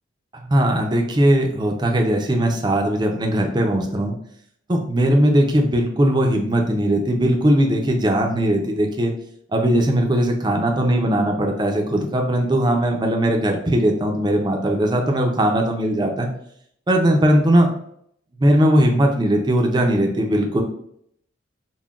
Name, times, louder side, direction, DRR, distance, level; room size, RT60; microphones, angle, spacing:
voice 1, 0.3-4.2 4.7-9.1 9.5-16.3 16.9-17.7 18.4-20.6, right 1 dB, 20° right, 2 dB, 0.5 m, -19 dB
5.6 x 2.2 x 2.4 m, 0.69 s
head